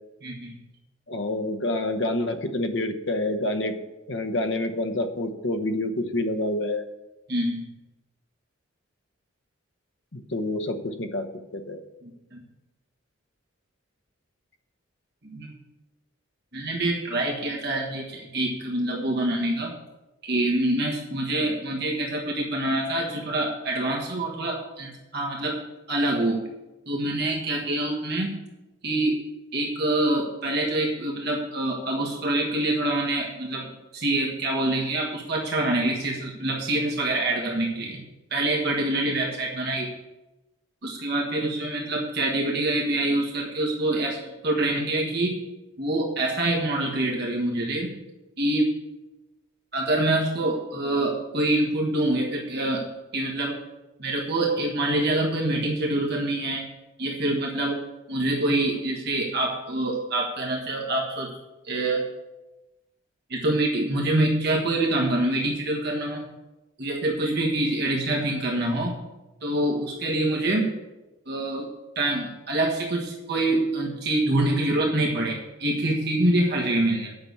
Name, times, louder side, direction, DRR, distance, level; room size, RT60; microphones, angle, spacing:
voice 1, 0.2-0.5 7.3-7.6 12.0-12.4 15.2-15.5 16.5-19.7 20.2-25.6 25.9-26.4 26.9-28.4 28.8-29.2 29.5-38.0 38.3-39.9 40.8-45.4 45.8-47.9 48.4-48.7 49.7-52.9 53.1-53.6 54.0-56.7 57.0-57.8 58.1-61.4 61.6-62.0 63.3-66.2 66.8-69.0 69.4-70.7 71.3-77.2, right 1 dB, 50° right, -1 dB, 1.5 m, -26 dB
voice 2, 1.1-3.8 4.1-6.8 10.1-11.3 11.5-11.8, left 1 dB, 60° left, 6 dB, 1.0 m, -27 dB
8.8 x 5.9 x 8.3 m, 1.0 s
head